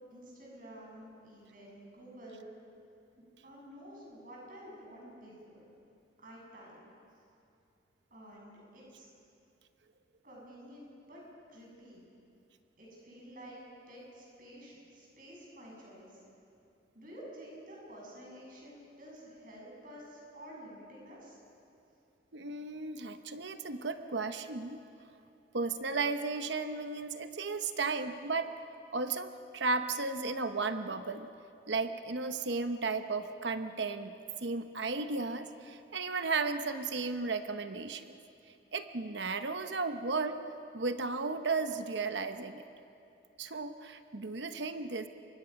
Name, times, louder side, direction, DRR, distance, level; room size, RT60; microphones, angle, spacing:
voice 1, 0.1-2.5 3.4-5.7 6.2-6.8 8.1-9.1 10.2-11.2 11.5-12.0 12.8-16.2 16.9-21.4, equal, 45° right, -3 dB, 7.9 m, -50 dB
voice 2, 22.3-24.8 25.5-28.5 28.9-31.3 31.7-38.0 38.7-40.4 40.7-42.6 43.4-45.1, right 4 dB, 70° right, 9 dB, 0.9 m, -34 dB
28.5 x 24.0 x 5.9 m, 2.7 s
head